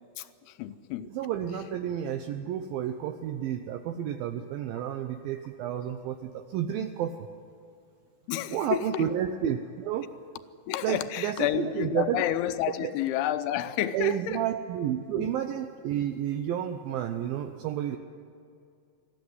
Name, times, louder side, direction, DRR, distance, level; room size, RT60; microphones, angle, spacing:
voice 1, 0.2-1.1 6.8-6.9 8.3-9.1 10.7-14.4 15.2-15.3, left 12 dB, 85° left, 11 dB, 2.8 m, -30 dB
voice 2, 1.1-7.3 8.5-10.1 10.8-12.2 12.8-12.9 13.9-18.0, right 10 dB, 75° right, 6 dB, 2.3 m, -31 dB
20.5 x 14.0 x 9.7 m, 2.3 s
omnidirectional pair, 4.5 m